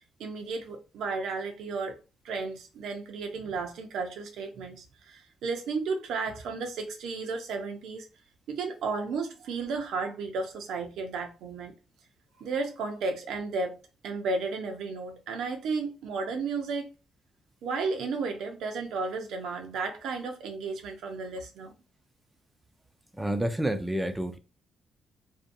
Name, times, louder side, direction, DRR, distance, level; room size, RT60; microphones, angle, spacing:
voice 1, 0.2-2.0 2.2-8.1 8.5-11.7 12.4-16.9 17.6-21.7, right 4 dB, 80° right, 0.6 m, -33 dB
voice 2, 23.2-24.4, right 1 dB, 10° right, 0.4 m, -29 dB
2.6 x 2.2 x 2.6 m
cardioid pair, 90°, 0 cm